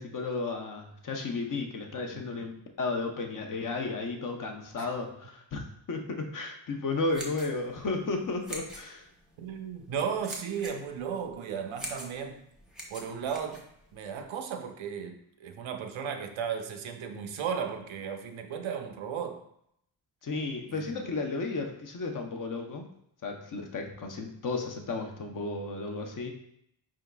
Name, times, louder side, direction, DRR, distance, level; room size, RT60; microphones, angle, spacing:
voice 1, 0.0-5.6 5.9-9.0 20.2-22.9 23.2-26.3, left 3 dB, 45° left, 3 dB, 0.7 m, -33 dB
voice 2, 2.1-2.5 4.8-4.9 9.4-12.4 12.9-13.6 13.9-19.4 20.7-21.0, right 7 dB, 90° right, 6 dB, 0.6 m, -35 dB
sound 1, 6.9-14.3, right 1 dB, ahead, 0.7 m, -45 dB
4.8 x 3.6 x 2.2 m, 0.73 s
wide cardioid pair, 120°, 46 cm